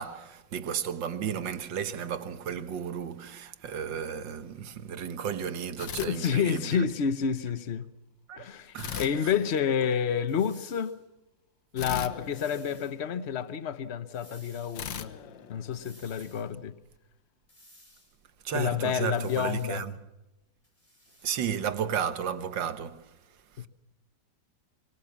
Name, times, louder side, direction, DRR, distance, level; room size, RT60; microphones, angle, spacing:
voice 1, 0.0-6.9 8.3-9.1 18.4-19.9 21.2-23.2 23.5-23.7, right 8 dB, 85° right, 1.9 m, -33 dB
sound 1, 5.8-6.9 8.8-10.2 11.8-13.5 14.7-16.3, left 9 dB, 85° left, 1.9 m, -40 dB
voice 2, 6.0-7.9 8.4-11.0 11.7-15.1 15.5-16.7 18.5-19.8, left 7 dB, 40° left, 1.2 m, -29 dB
sound 2, 10.3-11.0 12.2-12.9 14.1-14.9 15.7-16.5 17.5-18.2 19.1-19.8 20.6-21.3, left 1 dB, 15° left, 5.6 m, -56 dB
24.5 x 24.0 x 7.3 m
omnidirectional pair, 1.9 m